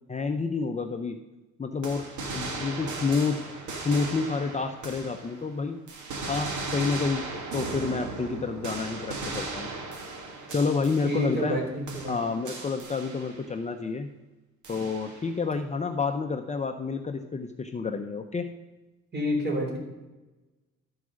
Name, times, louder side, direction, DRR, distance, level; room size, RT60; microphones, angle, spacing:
voice 1, 0.1-1.2 1.6-2.0 2.3-3.4 3.8-5.8 6.3-9.7 10.5-11.6 12.1-14.1 14.7-18.5, left 4 dB, 25° left, 6 dB, 0.6 m, -29 dB
sound 1, 1.8-5.5 5.9-11.6 11.9-13.5 14.6-15.4, right 3 dB, 75° right, 1.7 m, -37 dB
voice 2, 11.1-12.2 19.1-19.8, equal, 35° right, -1 dB, 3.7 m, -29 dB
12.5 x 4.8 x 6.3 m, 1.1 s
cardioid pair, 90°, 30 cm